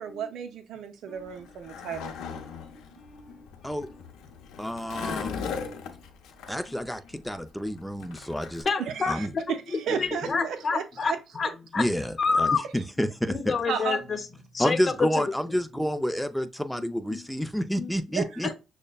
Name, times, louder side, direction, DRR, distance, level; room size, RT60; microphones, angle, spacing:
voice 1, 0.0-2.1 8.8-9.3 9.9-10.8 13.7-14.0 18.1-18.4, right 7 dB, 75° right, 0.5 m, -33 dB
Skateboard, 1.2-8.6, left 6 dB, 85° left, 0.6 m, -39 dB
voice 2, 2.3-3.8 4.6-4.7 5.6-6.0 8.0-8.3 8.6-11.9 12.2-12.6 13.3-15.3 16.8-17.3 17.8-17.9 18.4-18.5, left 4 dB, 40° left, 0.7 m, -30 dB
voice 3, 4.6-5.6 6.5-8.6 9.1-9.3 11.8-13.5 14.6-18.5, equal, ahead, 0.5 m, -29 dB
6.3 x 2.1 x 2.3 m
cardioid pair, 90°, 0 cm